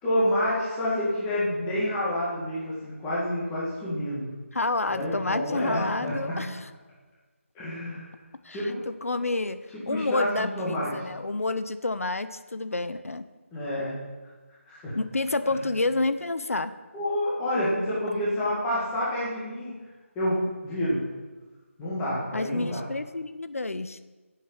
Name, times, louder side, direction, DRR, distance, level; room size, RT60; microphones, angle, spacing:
voice 1, 0.0-4.3 4.9-6.6 7.5-8.1 8.5-8.8 9.7-11.0 13.5-14.0 14.7-14.9 16.9-19.8 20.1-21.0 21.8-22.8, equal, 5° left, -8 dB, 1.8 m, -28 dB
voice 2, 4.5-6.7 8.4-13.2 14.9-16.8 22.3-24.0, left 2 dB, 80° left, 12 dB, 0.8 m, -29 dB
11.0 x 7.5 x 8.7 m, 1.3 s
figure-of-eight pair, 175°, 8 cm